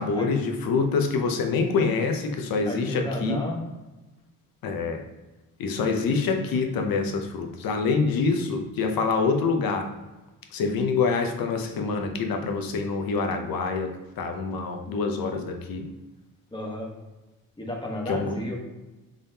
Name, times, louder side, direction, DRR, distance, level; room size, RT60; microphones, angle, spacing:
voice 1, 0.0-3.4 4.6-5.0 5.6-9.9 10.5-15.9 18.1-18.4, left 4 dB, 80° left, 5 dB, 0.7 m, -26 dB
voice 2, 2.7-3.6 16.5-16.9 17.6-18.5, left 1 dB, 15° left, -1 dB, 1.0 m, -32 dB
3.7 x 3.3 x 2.7 m, 1.1 s
cardioid pair, 85°, 35 cm